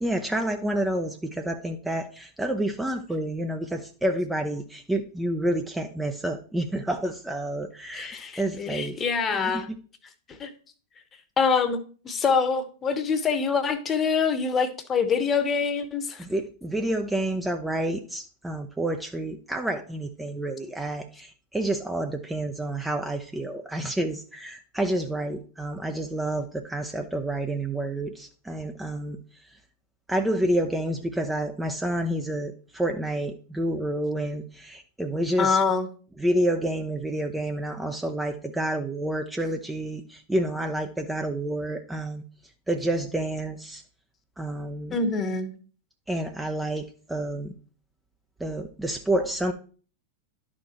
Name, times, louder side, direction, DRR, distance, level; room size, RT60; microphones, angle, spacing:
voice 1, 0.0-9.0 9.3-9.8 16.2-29.6 30.1-35.6 36.2-42.2 42.7-43.8 44.4-45.0 46.1-47.5 48.4-49.5, right 1 dB, 5° right, 5 dB, 0.6 m, -29 dB
voice 2, 7.9-9.7 10.4-10.5 11.4-16.2 35.4-35.9 44.9-45.5, left 5 dB, 25° left, 10 dB, 1.1 m, -25 dB
11.5 x 4.4 x 4.3 m, 0.41 s
figure-of-eight pair, 90°, 0 cm